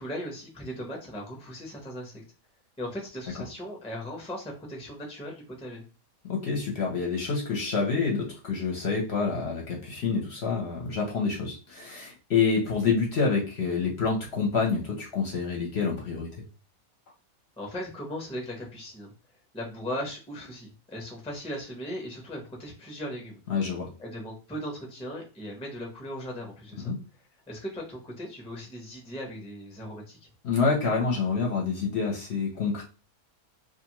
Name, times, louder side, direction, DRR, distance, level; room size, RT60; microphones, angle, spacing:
voice 1, 0.0-2.2 2.8-5.8 17.6-19.1 19.5-23.4 24.0-26.9 27.5-30.3, equal, 5° left, 0 dB, 0.5 m, -38 dB
voice 2, 6.2-16.3 23.5-23.9 26.8-27.0 30.4-32.8, left 5 dB, 55° left, -1 dB, 0.8 m, -27 dB
2.5 x 2.5 x 2.8 m, 0.32 s
omnidirectional pair, 1.5 m